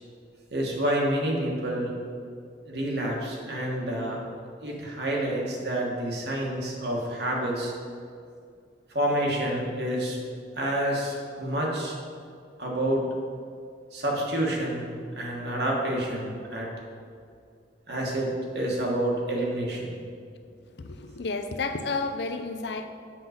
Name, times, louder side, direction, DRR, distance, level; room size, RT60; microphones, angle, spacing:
voice 1, 0.5-1.9 2.6-4.2 4.6-7.7 8.9-10.2 10.6-11.9 12.6-13.0 13.9-14.9 15.2-16.7 17.9-20.0, right 1 dB, 65° right, -2 dB, 1.5 m, -28 dB
voice 2, 20.8-22.9, left 3 dB, 65° left, 8 dB, 0.5 m, -31 dB
7.5 x 3.9 x 6.5 m, 2.3 s
head